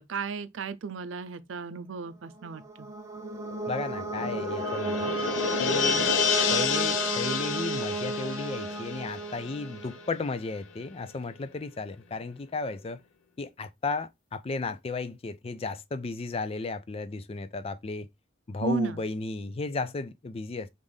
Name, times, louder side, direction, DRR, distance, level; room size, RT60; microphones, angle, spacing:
voice 1, 0.1-2.9 18.6-19.0, right 4 dB, 85° right, 0.5 m, -34 dB
sound 1, 2.4-10.1, right 3 dB, 15° right, 0.7 m, -34 dB
sound 2, 3.2-10.2 10.5-10.6, left 6 dB, 85° left, 0.6 m, -30 dB
voice 2, 3.7-5.1 5.6-6.1 6.5-13.0 13.4-18.1 18.5-20.7, left 3 dB, 30° left, 0.4 m, -34 dB
5.4 x 2.5 x 3.2 m
head